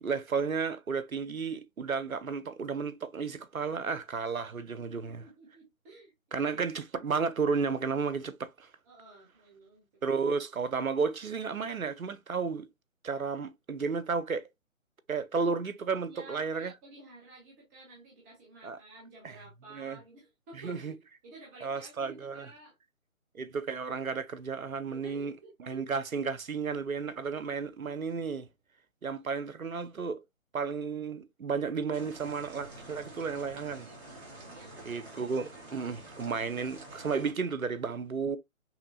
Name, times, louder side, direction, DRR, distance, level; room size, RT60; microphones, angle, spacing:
voice 1, 0.0-5.2 6.3-8.7 10.0-12.7 13.0-14.5 15.1-16.7 18.6-18.8 19.2-19.4 19.7-20.0 20.6-20.9 21.6-22.5 23.3-25.3 25.6-28.5 29.0-30.2 30.5-33.9 34.9-38.4, right 5 dB, 90° right, 0.7 m, -33 dB
voice 2, 4.9-6.5 8.8-10.2 16.1-22.8 24.9-25.9 34.4-35.3, right 2 dB, 15° right, 0.8 m, -52 dB
sound 1, 31.9-37.3, right 2 dB, 50° right, 2.3 m, -48 dB
5.8 x 2.8 x 2.5 m
figure-of-eight pair, 140°, 40 cm